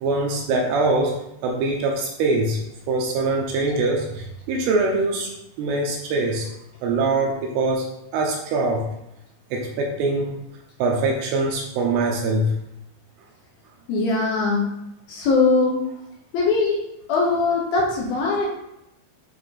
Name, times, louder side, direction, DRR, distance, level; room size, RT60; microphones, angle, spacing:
voice 1, 0.0-2.6 2.9-5.3 5.6-6.5 6.8-7.9 8.1-8.8 9.5-10.3 10.8-12.5, right 3 dB, 75° right, 0 dB, 2.6 m, -23 dB
voice 2, 13.9-14.7 15.1-15.9 16.3-18.5, left 3 dB, 70° left, -3 dB, 2.4 m, -21 dB
8.9 x 3.7 x 4.0 m, 0.85 s
omnidirectional pair, 5.2 m